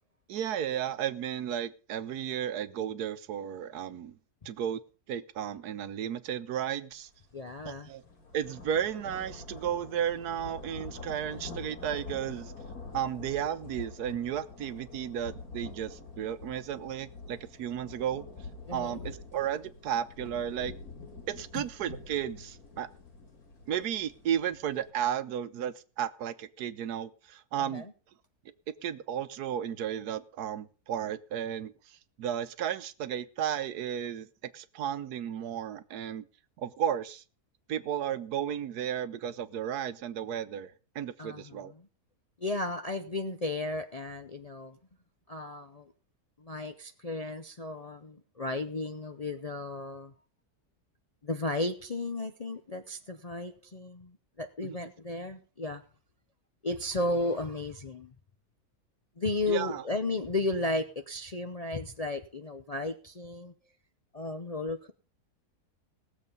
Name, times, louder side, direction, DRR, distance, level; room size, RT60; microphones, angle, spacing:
voice 1, 0.3-4.2 4.4-4.8 5.1-7.1 7.6-8.0 8.3-12.5 12.9-18.3 18.7-20.7 21.3-22.9 23.7-27.8 28.8-36.2 36.6-37.2 37.7-41.7 54.6-54.9 59.5-59.8, right 9 dB, 75° right, 13 dB, 1.3 m, -34 dB
sound 1, 7.1-7.3 7.6-24.9, left 3 dB, 65° left, 2.9 m, -46 dB
voice 2, 7.3-7.9 18.7-19.0 21.5-21.6 27.7-27.9 41.2-41.7 42.4-44.8 45.3-45.9 46.4-50.1 51.2-55.8 56.6-58.1 59.2-63.5 64.1-64.9, left 2 dB, 40° left, 6 dB, 0.5 m, -34 dB
18.0 x 7.3 x 5.3 m, 0.38 s
omnidirectional pair, 1.7 m